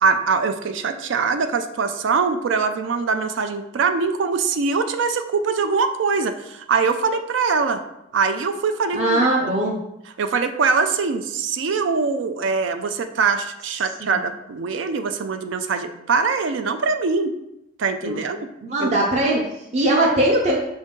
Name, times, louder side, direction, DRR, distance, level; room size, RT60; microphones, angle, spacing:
voice 1, 0.0-7.8 8.1-9.5 10.2-17.4 17.8-18.4 18.8-18.9, right 5 dB, 80° right, 8 dB, 0.4 m, -22 dB
voice 2, 8.9-9.8 14.0-14.2 18.0-18.2 18.6-20.6, right 1 dB, 35° right, -3 dB, 0.5 m, -20 dB
5.3 x 2.6 x 3.6 m, 0.85 s
head